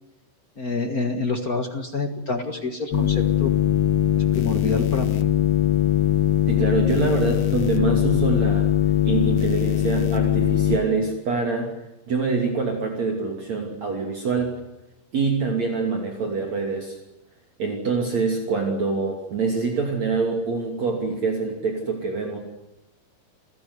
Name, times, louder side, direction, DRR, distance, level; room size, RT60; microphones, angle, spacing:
voice 1, 0.6-3.5 4.2-5.2, left 3 dB, 50° left, 5 dB, 1.1 m, -27 dB
sound 1, 2.9-10.8, left 11 dB, 65° left, 1.4 m, -21 dB
voice 2, 6.5-8.7 9.0-11.7 12.1-14.6 15.1-17.0 17.6-22.4, right 4 dB, 45° right, 2 dB, 3.8 m, -25 dB
29.0 x 15.5 x 9.7 m, 0.96 s
omnidirectional pair, 4.5 m